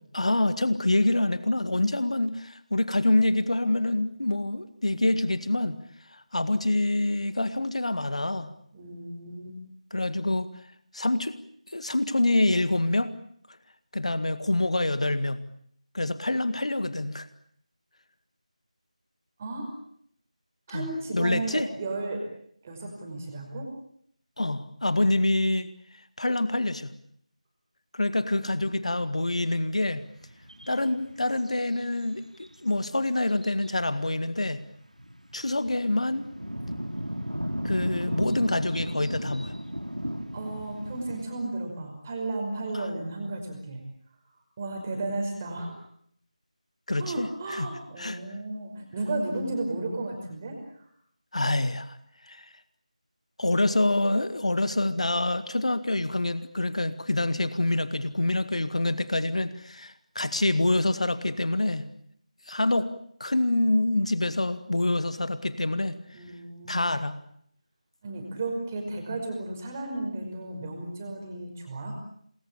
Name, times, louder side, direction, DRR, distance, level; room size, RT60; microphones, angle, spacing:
voice 1, 0.1-5.8 6.1-8.5 9.9-10.5 10.9-11.4 11.7-13.1 13.9-15.4 15.9-17.3 20.7-21.7 24.4-25.7 26.2-26.9 27.9-30.1 30.7-34.6 35.3-36.3 37.6-39.5 42.7-42.9 46.9-47.7 48.0-48.2 51.3-52.0 52.2-52.5 53.4-61.9 62.5-62.9 63.2-66.0 66.7-67.2, left 2 dB, 55° left, 12 dB, 1.9 m, -26 dB
voice 2, 8.7-9.6 19.4-19.7 20.7-22.2 22.6-23.7 40.3-43.8 44.6-45.8 47.0-50.6 66.1-66.9 68.0-72.0, right 2 dB, 20° right, 2 dB, 5.4 m, -34 dB
sound 1, 29.8-32.1 32.4-32.6 32.8-34.4 35.0-41.3, equal, 90° right, 4.4 m, -35 dB
28.0 x 21.5 x 8.7 m, 0.68 s
figure-of-eight pair, 165°, 4 cm